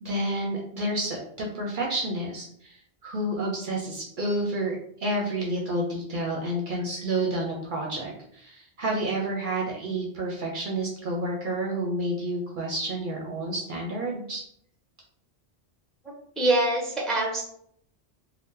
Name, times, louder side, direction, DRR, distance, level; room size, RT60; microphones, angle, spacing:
voice 1, 0.0-14.4, right 1 dB, 55° right, -1 dB, 0.7 m, -30 dB
voice 2, 16.4-17.4, right 2 dB, ahead, -2 dB, 0.6 m, -24 dB
2.7 x 2.1 x 3.6 m, 0.68 s
omnidirectional pair, 1.1 m